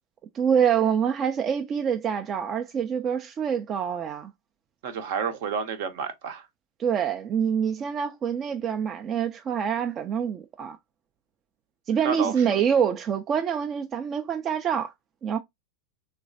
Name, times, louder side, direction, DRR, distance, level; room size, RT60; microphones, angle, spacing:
voice 1, 0.3-4.3 6.8-10.8 11.9-14.9 15.2-15.4, right 8 dB, 30° right, 0.4 m, -26 dB
voice 2, 4.8-6.4 11.9-12.6, right 6 dB, 55° right, 0.7 m, -30 dB
3.3 x 3.0 x 2.5 m
figure-of-eight pair, 90°, 0 cm